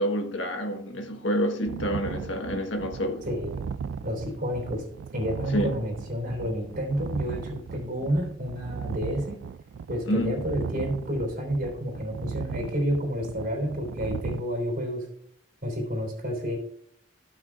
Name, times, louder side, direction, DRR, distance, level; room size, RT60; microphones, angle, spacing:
voice 1, 0.0-3.3 5.5-5.8 10.1-10.4, equal, 85° left, 1.4 m, -28 dB
sound 1, 1.7-14.4, right 6 dB, 85° right, 0.3 m, -37 dB
voice 2, 3.3-3.6 4.0-4.8 5.1-9.4 9.9-15.1 15.6-16.6, equal, 50° right, 3.2 m, -30 dB
14.5 x 6.2 x 2.5 m
head